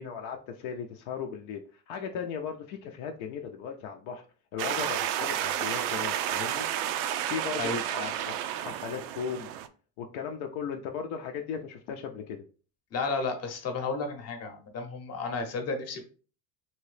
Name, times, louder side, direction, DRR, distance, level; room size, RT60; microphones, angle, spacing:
voice 1, 0.0-4.2 4.5-6.7 7.3-9.5 10.0-12.4, left 7 dB, 65° left, 3 dB, 0.5 m, -37 dB
sound 1, 4.6-9.7, right 11 dB, 80° right, 0.5 m, -31 dB
voice 2, 12.9-16.0, left 4 dB, 35° left, 5 dB, 0.8 m, -32 dB
2.9 x 2.8 x 3.2 m, 0.39 s
cardioid pair, 135°, 44 cm